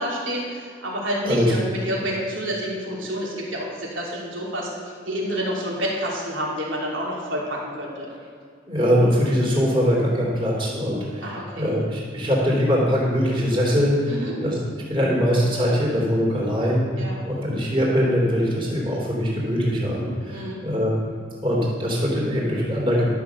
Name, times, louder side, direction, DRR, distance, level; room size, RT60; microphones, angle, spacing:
voice 1, 0.0-8.1 11.2-11.7 14.1-14.3 17.0-17.2 20.3-20.6, equal, 75° right, -4 dB, 3.3 m, -29 dB
voice 2, 8.7-14.5 14.9-20.9 21.4-23.1, equal, 25° right, -4 dB, 3.1 m, -22 dB
12.5 x 6.0 x 6.9 m, 2.2 s
head